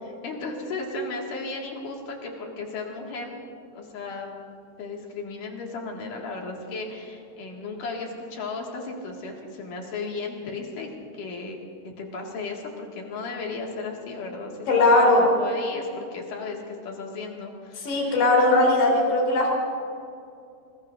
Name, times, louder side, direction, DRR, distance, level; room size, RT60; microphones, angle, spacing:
voice 1, 0.0-3.3 3.7-4.3 4.8-14.5 14.9-18.2, left 3 dB, 55° left, -1 dB, 3.4 m, -35 dB
voice 2, 14.7-15.2 17.8-19.5, left 2 dB, 80° left, -2 dB, 6.0 m, -19 dB
26.0 x 21.0 x 2.6 m, 2.6 s
omnidirectional pair, 4.7 m